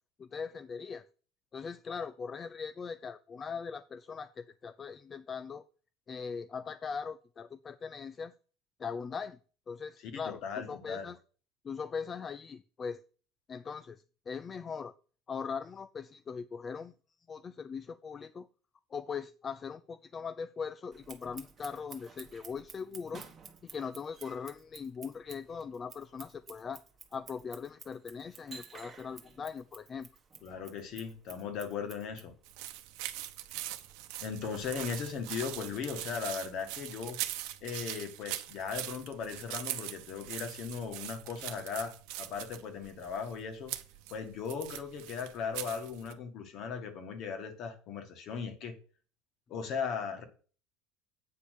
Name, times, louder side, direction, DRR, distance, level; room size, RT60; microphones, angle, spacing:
voice 1, 0.2-1.0 1.5-5.6 6.1-8.3 8.8-9.4 9.7-11.2 11.6-13.0 13.5-14.9 15.3-16.9 17.3-18.5 18.9-23.2 23.6-26.8 27.1-30.1, left 6 dB, 20° left, 0.3 m, -40 dB
voice 2, 10.0-11.1 30.4-32.3 34.2-37.2 37.6-41.9 42.2-43.7 44.1-48.7 49.5-50.2, left 6 dB, 45° left, 1.7 m, -38 dB
Scissors, 20.9-36.2, right 5 dB, 20° right, 1.2 m, -54 dB
sound 1, 32.5-46.1, right 14 dB, 65° right, 0.9 m, -42 dB
8.5 x 5.2 x 6.5 m
cardioid pair, 160°, 0 cm